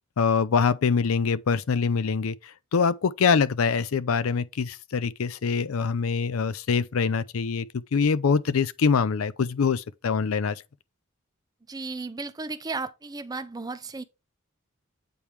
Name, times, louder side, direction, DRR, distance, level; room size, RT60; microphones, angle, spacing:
voice 1, 0.2-10.6, left 5 dB, 75° left, 0.5 m, -24 dB
voice 2, 11.7-14.0, right 3 dB, 20° right, 0.5 m, -34 dB
8.6 x 3.4 x 4.5 m
head